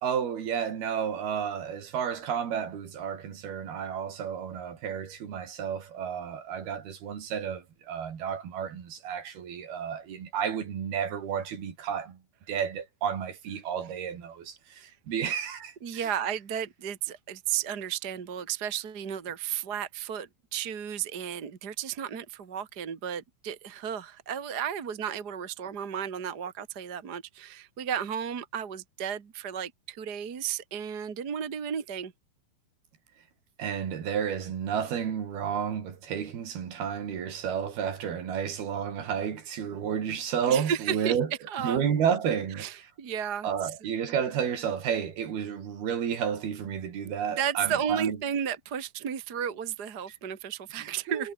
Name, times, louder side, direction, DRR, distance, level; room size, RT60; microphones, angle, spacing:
voice 1, 0.0-12.2 12.5-16.1 33.6-41.3 41.6-42.7 43.4-48.2 50.8-51.3, right 8 dB, 75° right, 5.1 m, -31 dB
voice 2, 15.8-32.1 40.5-41.2 41.5-41.8 42.6-43.5 47.0-51.3, right 8 dB, 40° right, 1.4 m, -33 dB
omnidirectional pair, 4.5 m